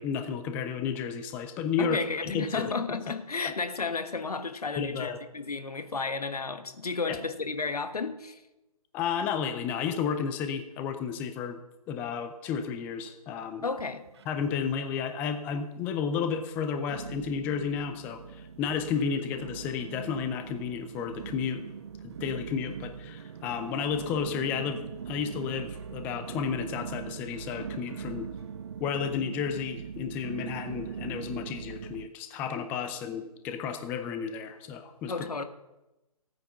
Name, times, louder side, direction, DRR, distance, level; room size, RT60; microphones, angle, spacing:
voice 1, 0.0-2.7 3.4-3.5 4.8-5.2 7.1-7.2 8.9-11.6 11.9-13.7 14.3-21.6 22.0-24.8 25.1-28.3 28.8-35.1, left 6 dB, 10° left, 0.4 m, -32 dB
voice 2, 1.8-8.4 13.6-14.1 35.1-35.4, left 4 dB, 75° left, 1.4 m, -32 dB
sound 1, 13.7-14.7 14.9-15.6 16.1-16.2 16.9-32.1, right 7 dB, 45° right, 0.5 m, -41 dB
15.5 x 9.2 x 5.8 m
figure-of-eight pair, 140°, 20 cm